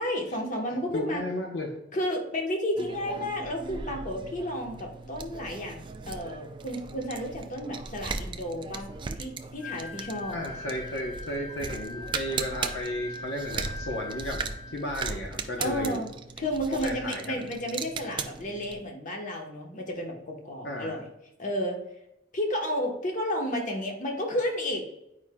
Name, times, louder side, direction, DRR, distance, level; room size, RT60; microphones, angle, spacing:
voice 1, 0.0-1.2 1.9-8.9 9.2-10.4 15.6-16.1 16.4-21.1 21.4-21.8 22.3-24.8, equal, 45° left, 1 dB, 1.1 m, -32 dB
voice 2, 0.9-1.7 10.3-16.0 16.7-17.4 20.6-21.0, left 1 dB, 70° left, 1 dB, 0.8 m, -34 dB
sound 1, 2.8-18.8, right 4 dB, 25° right, 0.4 m, -38 dB
Wind instrument woodwind instrument, 9.6-15.1, left 3 dB, ahead, 0.9 m, -41 dB
8.7 x 4.9 x 2.2 m, 0.87 s
head